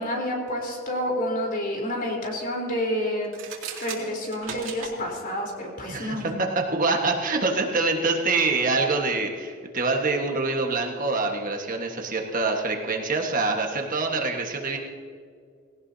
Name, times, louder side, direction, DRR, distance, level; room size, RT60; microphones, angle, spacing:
voice 1, 0.0-3.3 3.8-6.4, equal, 45° left, -1 dB, 4.0 m, -29 dB
sound 1, 3.2-5.0, right 6 dB, 85° right, 2.6 m, -36 dB
voice 2, 5.9-14.8, right 3 dB, 45° right, 2 dB, 1.5 m, -25 dB
18.5 x 17.5 x 2.8 m, 2.1 s
head